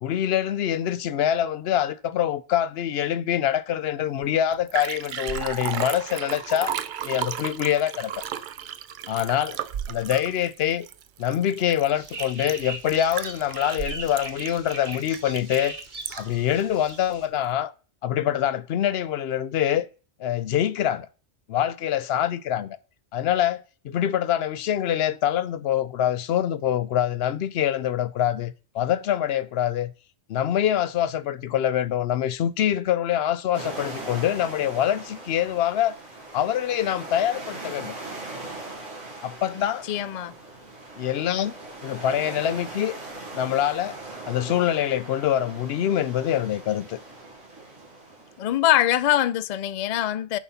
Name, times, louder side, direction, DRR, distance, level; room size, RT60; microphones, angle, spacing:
voice 1, 0.0-6.8 7.0-8.1 9.1-9.6 9.9-10.9 11.2-15.7 16.2-17.7 18.0-19.9 20.2-21.1 21.5-22.8 23.1-29.9 30.3-36.0 36.3-37.9 39.2-39.8 41.0-41.5 41.8-43.0 43.3-44.0 44.3-47.0, left 10 dB, 65° left, 0.7 m, -25 dB
Liquid, 4.2-4.3 4.5-16.4 16.9-17.0, right 9 dB, 60° right, 0.5 m, -34 dB
sound 1, 12.0-17.3, right 2 dB, 40° right, 1.4 m, -39 dB
sound 2, 33.5-48.7, right 2 dB, 85° right, 2.2 m, -40 dB
voice 2, 39.5-40.3 48.4-50.4, left 12 dB, 80° left, 0.3 m, -23 dB
7.4 x 4.1 x 5.7 m
omnidirectional pair, 1.2 m